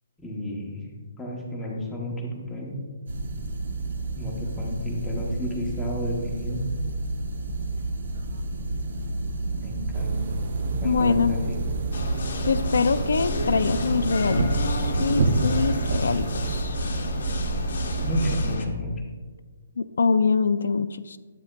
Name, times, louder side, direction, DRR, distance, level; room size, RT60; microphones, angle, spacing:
voice 1, 0.2-0.9 1.2-2.8 4.1-6.7 9.6-10.2 10.6-11.6 18.0-18.9, left 1 dB, 5° left, -4 dB, 0.7 m, -32 dB
sound 1, 3.1-18.6, right 2 dB, 60° right, 0.9 m, -30 dB
sound 2, 9.9-16.6, right 3 dB, 35° right, 0.5 m, -29 dB
voice 2, 10.8-11.4 12.5-16.8 19.8-21.2, left 5 dB, 80° left, 11 dB, 0.3 m, -24 dB
sound 3, 11.9-18.6, left 2 dB, 55° left, 0.8 m, -32 dB
9.8 x 8.0 x 2.2 m, 1.4 s
hypercardioid pair, 180°, 0 cm